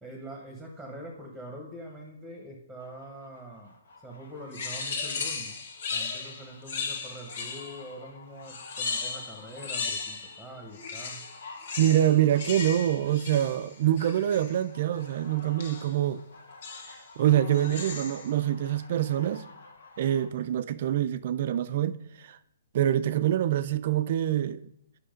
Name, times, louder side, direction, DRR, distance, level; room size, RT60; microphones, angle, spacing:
voice 1, 0.0-3.7 4.0-5.6 5.9-11.2, right 1 dB, ahead, 1.1 m, -44 dB
sound 1, 2.8-20.3, left 3 dB, 80° left, 2.1 m, -51 dB
sound 2, 4.5-7.9 8.4-10.4 10.7-14.6 15.6-16.0 16.6-17.1 17.5-18.3, left 4 dB, 50° left, 1.8 m, -36 dB
voice 2, 11.8-16.2 16.9-19.4 20.0-22.4 22.7-24.6, right 11 dB, 45° right, 0.4 m, -25 dB
8.6 x 5.7 x 5.1 m
hypercardioid pair, 165°, 0 cm